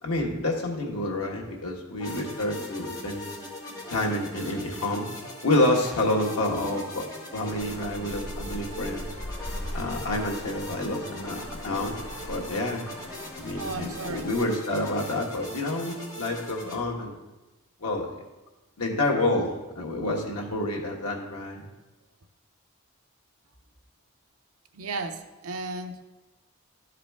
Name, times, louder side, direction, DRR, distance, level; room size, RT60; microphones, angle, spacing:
voice 1, 0.0-3.3 3.9-5.1 5.4-7.0 7.3-9.1 9.7-12.0 12.3-12.9 13.3-17.2 17.8-18.1 18.8-21.6, left 1 dB, 85° left, 0 dB, 1.5 m, -28 dB
sound 1, 2.0-16.7, left 1 dB, 15° left, 1.5 m, -40 dB
Traffic noise roadway noise, 7.5-14.4, left 1 dB, 65° left, 1.4 m, -40 dB
voice 2, 13.6-14.3 24.7-26.0, right 3 dB, 75° right, 6 dB, 0.7 m, -34 dB
12.5 x 4.9 x 3.5 m, 1.1 s
head